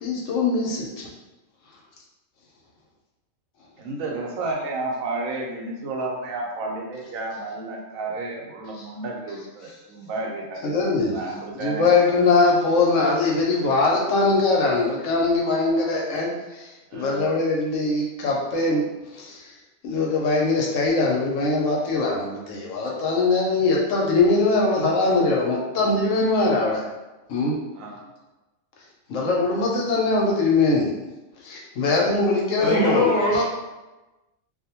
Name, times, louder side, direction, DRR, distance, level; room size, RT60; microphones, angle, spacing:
voice 1, 0.0-1.1 10.6-11.1 11.6-18.8 19.1-19.4 19.8-26.8 27.3-27.5 29.1-30.9 31.4-33.4, left 3 dB, 80° left, -2 dB, 1.0 m, -22 dB
voice 2, 3.8-10.7 11.0-12.2 16.9-17.3 27.7-28.0, right 2 dB, 90° right, -1 dB, 1.0 m, -32 dB
voice 3, 32.6-33.4, left 2 dB, 60° left, -4 dB, 0.7 m, -21 dB
2.5 x 2.1 x 2.8 m, 1.1 s
omnidirectional pair, 1.3 m